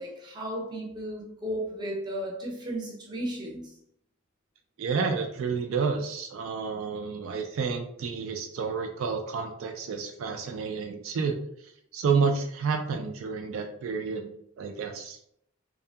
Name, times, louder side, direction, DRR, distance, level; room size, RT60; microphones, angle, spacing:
voice 1, 0.0-3.8, right 1 dB, 20° right, 0.6 m, -34 dB
voice 2, 4.8-11.4 11.9-14.3 14.6-15.2, right 5 dB, 70° right, 0.3 m, -30 dB
2.7 x 2.5 x 2.3 m
head